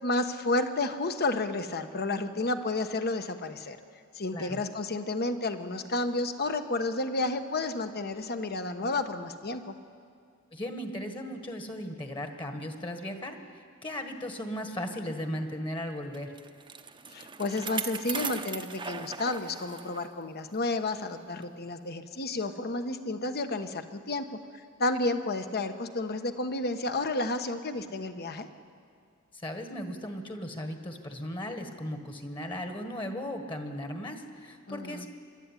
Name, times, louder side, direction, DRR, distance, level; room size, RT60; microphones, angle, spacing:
voice 1, 0.0-3.8 4.1-9.7 17.1-24.3 24.8-28.5 34.7-35.1, left 2 dB, 50° left, 8 dB, 1.2 m, -31 dB
voice 2, 10.5-13.4 13.8-16.3 29.3-35.1, equal, 25° left, 6 dB, 1.6 m, -36 dB
Bicycle, 16.1-20.1 20.5-20.6 21.4-21.5, right 6 dB, 20° right, 0.9 m, -38 dB
25.0 x 12.5 x 9.9 m, 2.2 s
head